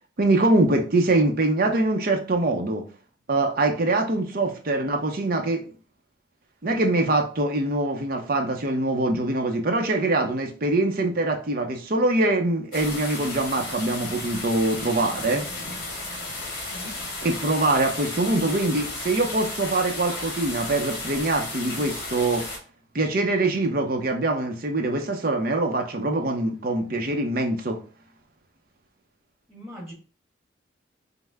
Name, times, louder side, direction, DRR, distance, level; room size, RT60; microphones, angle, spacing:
voice 1, 0.2-2.8 3.3-5.6 6.6-15.4 17.2-22.5 22.9-27.8, right 2 dB, 50° right, 4 dB, 0.6 m, -23 dB
sound 1, 12.7-22.6, left 2 dB, 55° left, 1.6 m, -34 dB
voice 2, 29.5-29.9, equal, ahead, -3 dB, 1.3 m, -40 dB
5.4 x 2.1 x 3.4 m, 0.37 s
head